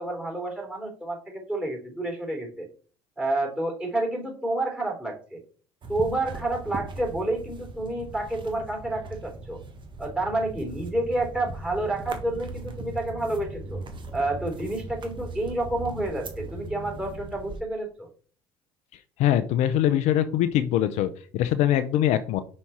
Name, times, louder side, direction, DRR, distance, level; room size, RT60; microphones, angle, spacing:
voice 1, 0.0-2.7 3.2-5.4 5.9-9.6 10.0-13.8 14.1-18.1, right 2 dB, 10° right, 0 dB, 3.5 m, -29 dB
sound 1, 5.8-17.6, right 2 dB, 40° right, 1.4 m, -39 dB
voice 2, 19.2-22.4, left 11 dB, 65° left, 12 dB, 0.5 m, -23 dB
5.7 x 4.3 x 4.3 m, 0.42 s
hypercardioid pair, 65°, 13 cm